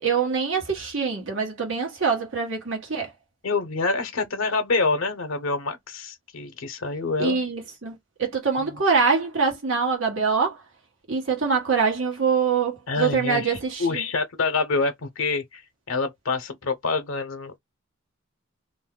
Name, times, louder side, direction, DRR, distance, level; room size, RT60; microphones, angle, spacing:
voice 1, 0.0-3.1 7.2-10.6 11.1-14.0, right 5 dB, 70° right, 1.2 m, -24 dB
voice 2, 3.4-7.4 8.6-8.7 12.9-15.6 15.9-17.5, left 3 dB, 85° left, 0.7 m, -26 dB
2.6 x 2.2 x 3.6 m
head